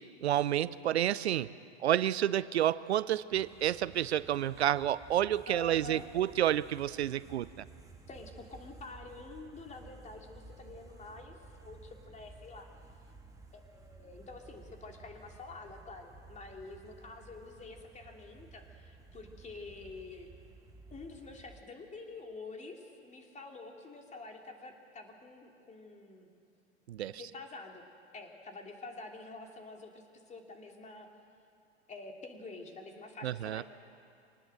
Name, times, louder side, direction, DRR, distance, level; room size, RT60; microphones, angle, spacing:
voice 1, 0.2-1.5 1.8-7.5 26.9-27.1 33.2-33.6, right 11 dB, 75° right, 18 dB, 0.6 m, -29 dB
sound 1, 3.3-21.6, right 3 dB, 10° right, 2.0 m, -55 dB
voice 2, 5.5-6.1 8.1-12.7 13.5-20.3 20.9-26.3 27.1-27.9 28.1-31.1 31.9-33.6, left 3 dB, 20° left, 2 dB, 3.1 m, -48 dB
25.0 x 19.0 x 7.8 m, 2.4 s
figure-of-eight pair, 85°, 33 cm